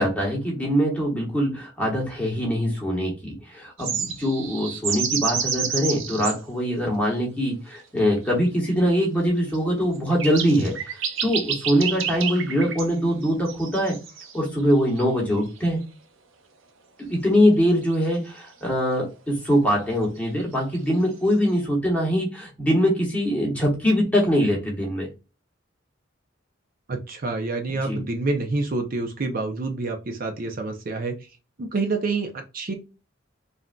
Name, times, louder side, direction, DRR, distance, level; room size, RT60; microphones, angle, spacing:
voice 1, 0.0-14.0 14.3-15.8 17.0-25.1 27.8-28.0, equal, 10° left, -2 dB, 1.1 m, -23 dB
sound 1, 3.8-6.4 8.2-8.3 9.5-9.6 10.1-12.9 13.2-14.6 15.0-15.1 17.6-17.7 17.9-18.0 20.3-20.8, right 7 dB, 85° right, 0.6 m, -29 dB
voice 2, 26.9-31.1 31.6-32.7, right 3 dB, 45° right, 3 dB, 0.5 m, -27 dB
3.6 x 2.5 x 2.2 m, 0.30 s
head